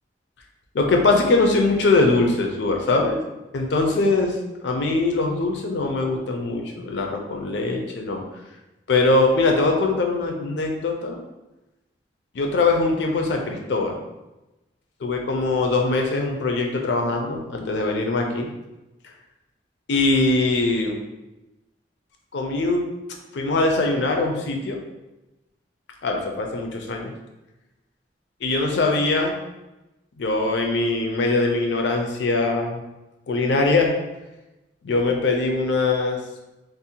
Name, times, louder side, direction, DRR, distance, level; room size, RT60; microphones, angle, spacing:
voice 1, 0.7-3.2 3.5-4.4 4.6-8.2 8.9-11.2 12.3-14.0 15.0-18.5 19.9-21.0 22.3-22.9 23.3-24.8 26.0-27.1 28.4-29.4 30.2-32.8 33.3-33.9 34.8-36.2, left 3 dB, 65° left, 2 dB, 0.4 m, -22 dB
2.6 x 2.1 x 2.7 m, 1.0 s
head